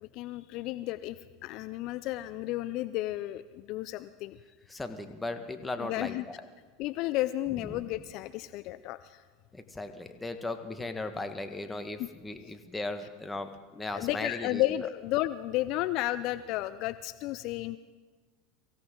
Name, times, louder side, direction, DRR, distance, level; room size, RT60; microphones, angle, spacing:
voice 1, 0.0-4.4 5.8-6.2 6.8-9.2 12.0-12.1 13.9-17.8, left 15 dB, 55° left, 15 dB, 0.4 m, -33 dB
voice 2, 4.7-6.3 7.7-7.8 9.5-14.6, left 2 dB, 10° left, 7 dB, 1.5 m, -37 dB
24.0 x 16.0 x 3.8 m, 1.4 s
hypercardioid pair, 90°, 0 cm